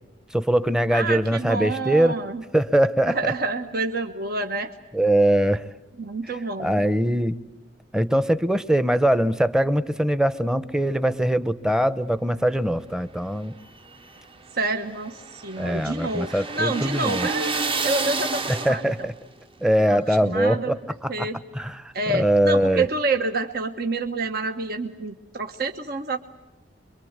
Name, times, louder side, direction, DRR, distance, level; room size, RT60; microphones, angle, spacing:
voice 1, 0.3-2.2 2.5-3.3 4.9-5.6 6.6-7.4 7.9-13.5 15.6-17.3 18.5-19.1 19.6-21.3 21.5-22.8, right 1 dB, 5° right, 14 dB, 0.9 m, -22 dB
voice 2, 0.9-2.4 3.1-4.7 6.0-6.8 14.5-18.8 19.9-20.8 21.1-21.4 21.9-26.2, right 3 dB, 60° right, 5 dB, 1.2 m, -28 dB
sound 1, 13.6-19.1, right 4 dB, 30° right, 1.0 m, -30 dB
26.5 x 23.5 x 8.1 m, 1.1 s
head